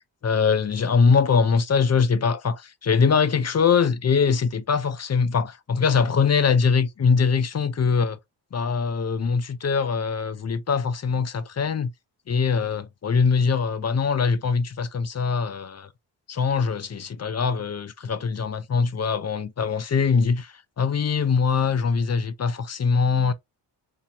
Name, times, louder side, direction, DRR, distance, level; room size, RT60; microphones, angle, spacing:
voice 1, 0.2-8.2 8.5-11.9 12.3-15.9 16.3-23.3, left 5 dB, 35° left, 0.5 m, -22 dB
4.2 x 2.8 x 2.8 m
cardioid pair, 75°, 44 cm